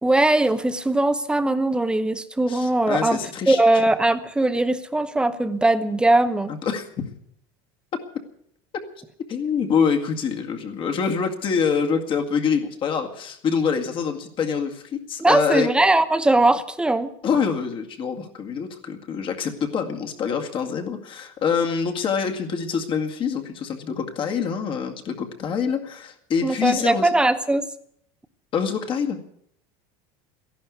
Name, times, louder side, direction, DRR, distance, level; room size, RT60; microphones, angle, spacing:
voice 1, 0.0-3.2 3.5-6.5 15.2-17.1 26.4-27.7, right 2 dB, 5° right, 11 dB, 0.9 m, -20 dB
voice 2, 2.5-3.8 6.6-6.9 9.3-15.7 17.2-27.1 28.5-29.2, left 6 dB, 40° left, 4 dB, 2.0 m, -25 dB
14.5 x 11.5 x 8.3 m, 0.70 s
supercardioid pair, 135°, 14 cm